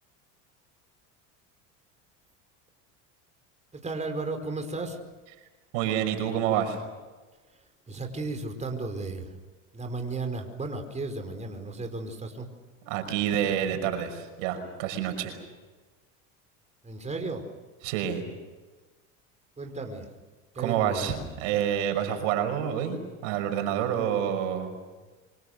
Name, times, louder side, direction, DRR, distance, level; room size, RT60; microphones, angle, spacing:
voice 1, 3.7-5.0 7.9-9.3 9.7-12.5 16.8-17.4 19.6-20.1 20.5-21.1, right 3 dB, 20° right, 5 dB, 4.9 m, -34 dB
voice 2, 5.7-6.8 12.8-15.4 17.8-18.2 20.6-24.7, right 9 dB, 80° right, 6 dB, 5.7 m, -28 dB
27.5 x 26.0 x 6.6 m, 1.3 s
supercardioid pair, 95°, 37 cm